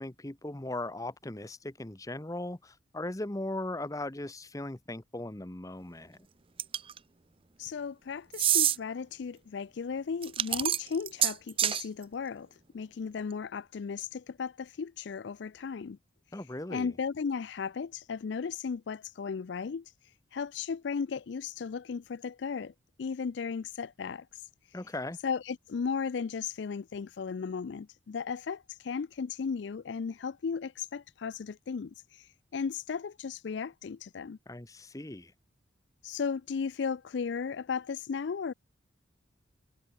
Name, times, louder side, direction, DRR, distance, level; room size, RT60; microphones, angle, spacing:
voice 1, 0.0-6.2 16.3-16.9 24.7-25.2 34.5-35.3, left 1 dB, 15° left, 0.9 m, -38 dB
sound 1, 6.6-7.0 8.3-8.8 10.2-11.8, right 10 dB, 30° right, 0.5 m, -26 dB
voice 2, 7.6-12.5 12.7-16.0 16.7-19.9 20.3-22.7 23.0-24.4 25.2-34.4 36.0-38.5, left 5 dB, 65° left, 0.4 m, -35 dB
head